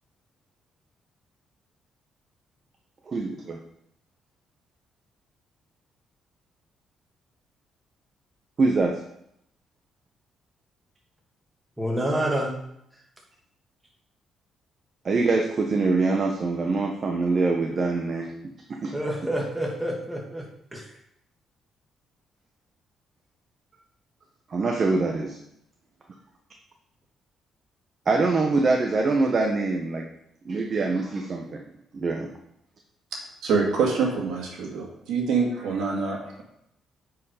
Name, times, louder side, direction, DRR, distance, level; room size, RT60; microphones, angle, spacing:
voice 1, 3.1-3.6 8.6-9.0 15.0-18.3 18.8-18.9 24.5-25.4 28.1-30.1 30.4-31.6 31.9-32.3, right 3 dB, 45° right, 2 dB, 1.1 m, -24 dB
voice 2, 11.8-12.5 18.9-20.9, right 1 dB, 10° right, -1 dB, 2.3 m, -28 dB
voice 3, 33.4-36.4, right 5 dB, 85° right, -1 dB, 2.2 m, -25 dB
9.4 x 5.0 x 5.0 m, 0.76 s
cardioid pair, 90°, 0 cm